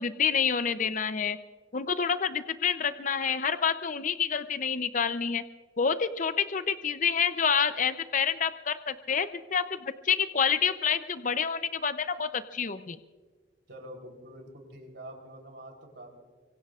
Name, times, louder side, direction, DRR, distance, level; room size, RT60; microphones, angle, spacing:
voice 1, 0.0-1.4 1.7-5.4 5.8-13.0, left 6 dB, 40° left, 11 dB, 0.6 m, -28 dB
voice 2, 13.7-16.2, right 1 dB, 65° right, 2 dB, 3.6 m, -46 dB
24.5 x 24.0 x 2.5 m, 1.4 s
head